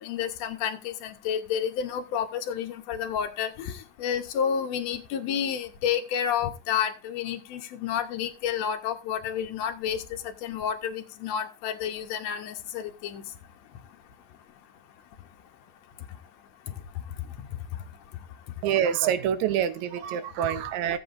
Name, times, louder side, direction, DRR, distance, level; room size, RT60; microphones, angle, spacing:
voice 1, 0.0-13.2, left 8 dB, 65° left, 5 dB, 1.9 m, -30 dB
voice 2, 18.6-21.0, right 9 dB, 70° right, 11 dB, 2.0 m, -26 dB
17.0 x 8.0 x 2.6 m, 0.30 s
omnidirectional pair, 4.0 m